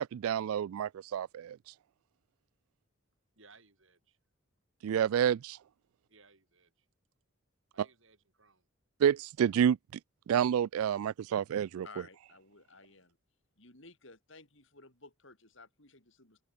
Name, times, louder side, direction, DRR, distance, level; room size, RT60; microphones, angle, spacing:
voice 1, 0.0-1.6 4.8-5.6 9.0-9.8 10.3-11.9, right 9 dB, 85° right, 0.3 m, -29 dB
voice 2, 3.3-4.2 6.1-6.9 7.7-8.7, right 4 dB, 65° right, 5.9 m, -62 dB
voice 3, 11.8-13.2 13.6-16.4, left 3 dB, 60° left, 6.2 m, -55 dB
head